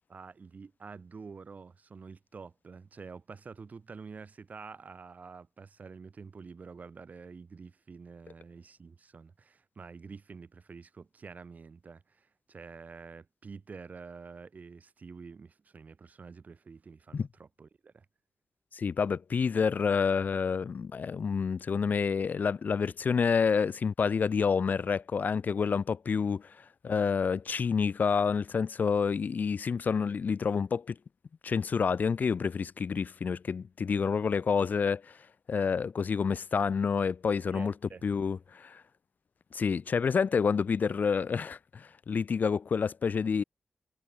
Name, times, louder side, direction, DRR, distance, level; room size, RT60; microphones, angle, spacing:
voice 1, 0.1-18.1 37.5-38.1, right 5 dB, 55° right, 7.5 m, -48 dB
voice 2, 18.7-31.0 31.4-35.2 35.5-37.7 38.0-38.8 39.5-43.4, left 6 dB, 65° left, 0.8 m, -28 dB
wide cardioid pair, 90°, 3 cm